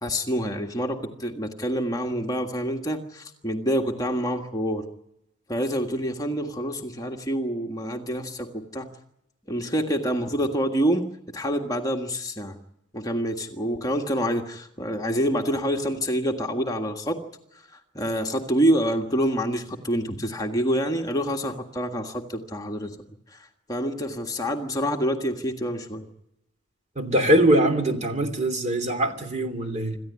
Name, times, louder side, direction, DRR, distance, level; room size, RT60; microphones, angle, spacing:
voice 1, 0.0-4.9 5.5-8.9 9.5-11.0 11.3-12.6 12.9-17.2 18.0-22.9 23.3-23.4 23.7-26.1, equal, 15° left, 3 dB, 1.7 m, -27 dB
voice 2, 27.0-30.0, right 1 dB, 35° right, 7 dB, 2.8 m, -22 dB
27.0 x 15.0 x 9.6 m, 0.85 s
head